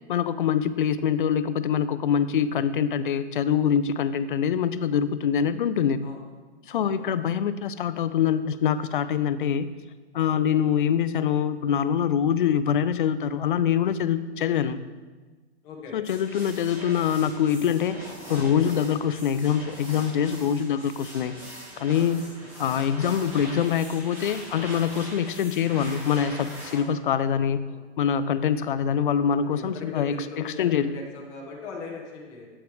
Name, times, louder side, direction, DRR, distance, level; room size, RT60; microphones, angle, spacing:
voice 1, 0.1-6.0 6.7-9.7 10.1-14.8 15.9-21.3 21.8-22.2 22.6-27.6 28.0-30.9, left 8 dB, 50° left, 14 dB, 0.4 m, -24 dB
voice 2, 6.7-7.2 15.6-16.0 22.4-22.5 26.7-26.9 27.2-27.4 27.7-28.2 29.4-32.5, left 4 dB, 10° left, -2 dB, 0.8 m, -40 dB
sound 1, 16.0-26.8, equal, 5° right, 1.0 m, -42 dB
8.4 x 7.9 x 3.2 m, 1.3 s
hypercardioid pair, 175°, 33 cm